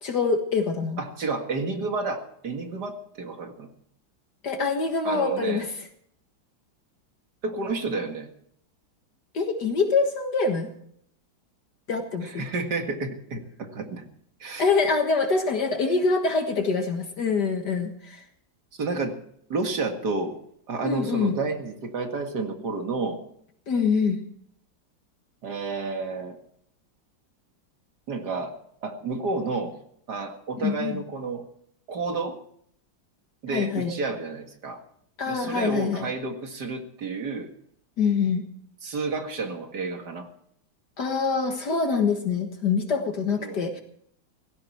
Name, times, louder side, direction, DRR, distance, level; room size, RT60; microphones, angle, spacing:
voice 1, 0.0-1.0 4.4-5.7 9.3-10.7 11.9-12.4 14.6-18.2 20.8-21.4 23.7-24.2 30.6-31.0 33.5-33.9 35.2-36.1 38.0-38.4 41.0-43.8, left 4 dB, 60° left, 5 dB, 2.1 m, -25 dB
voice 2, 1.0-3.7 5.0-5.6 7.4-8.3 12.2-14.1 14.4-14.7 18.8-19.2 19.5-20.4 20.7-23.2 25.4-26.4 28.1-28.5 28.8-29.7 30.1-31.4 31.9-32.4 33.4-34.8 35.3-37.5 38.8-40.3 43.4-43.6, right 3 dB, 55° right, 5 dB, 2.4 m, -30 dB
16.5 x 16.5 x 4.5 m, 0.67 s
omnidirectional pair, 2.1 m